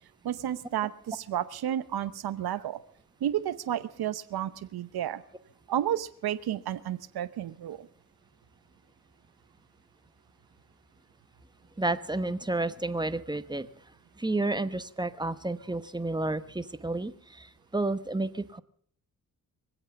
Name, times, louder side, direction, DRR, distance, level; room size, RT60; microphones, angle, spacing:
voice 1, 0.2-2.8 3.2-5.2 5.7-7.9, right 11 dB, 85° right, 13 dB, 0.9 m, -31 dB
voice 2, 11.8-13.7 14.2-18.6, right 2 dB, 10° right, 12 dB, 1.0 m, -31 dB
24.0 x 8.3 x 7.0 m, 0.63 s
cardioid pair, 65°, 37 cm